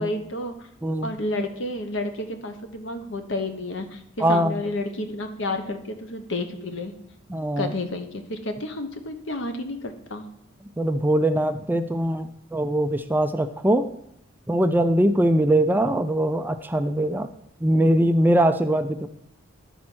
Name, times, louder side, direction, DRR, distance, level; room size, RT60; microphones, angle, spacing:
voice 1, 0.0-0.7 1.0-6.9 7.6-10.3, left 2 dB, 65° left, 7 dB, 1.0 m, -31 dB
voice 2, 0.8-1.2 4.2-4.6 7.3-7.7 10.8-13.9 14.5-17.3 17.6-19.1, right 1 dB, 10° right, 9 dB, 0.3 m, -22 dB
11.0 x 4.3 x 6.1 m, 0.77 s
head